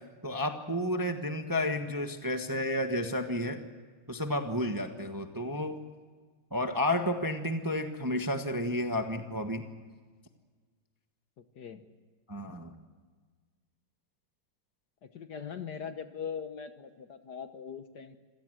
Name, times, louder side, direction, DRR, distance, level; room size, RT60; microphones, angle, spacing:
voice 1, 0.2-3.6 4.1-5.8 6.5-9.6 12.3-12.8, left 1 dB, 10° right, 5 dB, 1.1 m, -31 dB
voice 2, 11.4-11.8 15.0-18.2, left 7 dB, 55° left, 9 dB, 1.5 m, -41 dB
26.0 x 17.5 x 7.8 m, 1.5 s
omnidirectional pair, 2.4 m